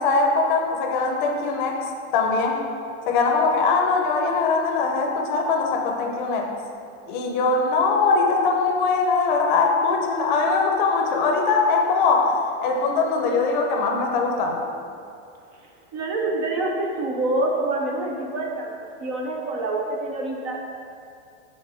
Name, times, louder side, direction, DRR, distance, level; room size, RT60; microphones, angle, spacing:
voice 1, 0.0-1.9 2.1-2.6 3.1-6.5 7.1-14.7, left 4 dB, 45° left, 3 dB, 0.6 m, -21 dB
voice 2, 15.9-18.7 19.0-20.6, right 2 dB, 30° right, 0 dB, 0.5 m, -26 dB
5.9 x 3.6 x 4.9 m, 2.4 s
supercardioid pair, 165°, 35 cm